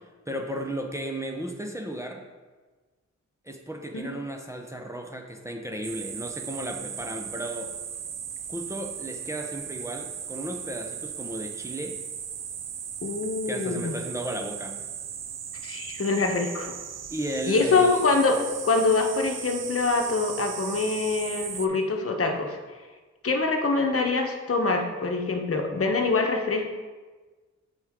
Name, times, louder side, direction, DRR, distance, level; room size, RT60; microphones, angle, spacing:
voice 1, 0.3-2.2 3.4-7.7 8.5-12.0 13.5-14.8 17.1-18.0, right 1 dB, 10° right, 2 dB, 0.7 m, -34 dB
sound 1, 5.8-21.7, right 8 dB, 60° right, 0.5 m, -37 dB
voice 2, 13.0-13.9 15.6-16.7 17.4-18.4 18.6-22.6 23.2-26.7, left 3 dB, 50° left, 3 dB, 1.0 m, -25 dB
7.8 x 4.7 x 3.6 m, 1.3 s
wide cardioid pair, 75°, 30 cm